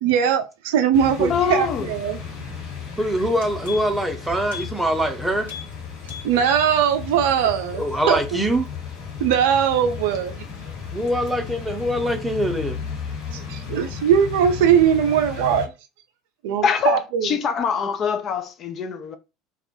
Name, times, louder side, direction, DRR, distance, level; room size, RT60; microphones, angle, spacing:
voice 1, 0.0-2.2 6.2-8.4 9.2-10.4 13.3-15.7 16.4-17.4, right 8 dB, 65° right, 0.3 m, -20 dB
sound 1, 0.9-15.7, left 6 dB, 60° left, 1.3 m, -34 dB
voice 2, 1.3-1.9 16.6-19.2, left 6 dB, 40° left, 0.4 m, -24 dB
sound 2, 2.8-2.9 3.2-4.1 4.5-4.7 5.0-5.1 5.4-5.7 6.0-6.7 7.1-7.2, left 7 dB, 75° left, 0.9 m, -37 dB
voice 3, 3.0-5.5 7.8-8.7 10.9-12.8, right 1 dB, 5° right, 0.6 m, -23 dB
2.2 x 2.1 x 2.8 m
figure-of-eight pair, 65°, 0 cm